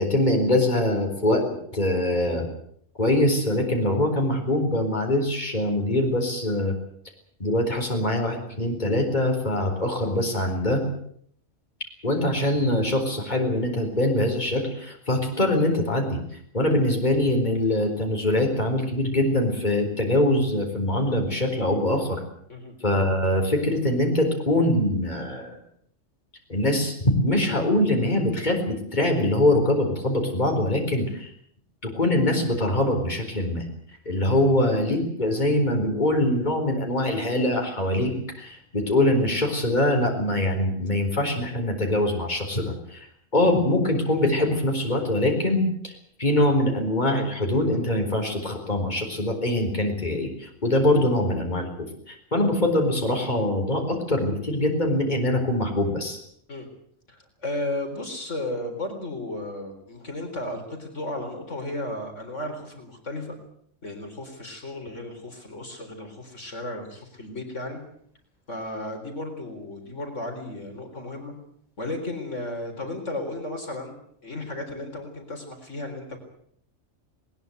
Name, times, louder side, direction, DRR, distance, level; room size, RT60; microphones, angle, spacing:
voice 1, 0.0-1.4 1.7-2.4 3.0-6.7 7.4-10.8 12.0-16.2 16.5-22.2 22.8-25.6 26.5-31.3 31.8-33.7 34.1-43.1 43.3-45.9 46.2-56.2, left 1 dB, 35° left, 2 dB, 4.4 m, -23 dB
voice 2, 57.1-63.4 63.8-67.8 68.5-71.3 71.8-74.0 74.2-76.2, left 1 dB, 75° left, 4 dB, 4.4 m, -34 dB
20.5 x 20.0 x 8.1 m, 0.65 s
omnidirectional pair, 1.3 m